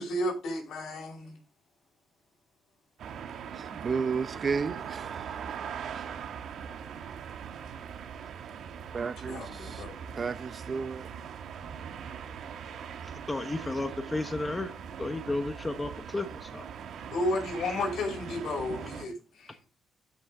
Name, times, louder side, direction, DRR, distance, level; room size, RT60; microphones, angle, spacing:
voice 1, 0.0-1.4 9.3-10.0 17.1-19.6, left 1 dB, 70° left, 5.6 m, -33 dB
sound 1, 3.0-19.1, right 7 dB, 70° right, 1.4 m, -41 dB
voice 2, 3.7-5.4 8.9-9.8 10.2-11.1, right 5 dB, 40° right, 0.8 m, -32 dB
voice 3, 13.0-16.7, left 2 dB, 20° left, 1.1 m, -33 dB
13.0 x 6.2 x 3.7 m
cardioid pair, 90°, 0 cm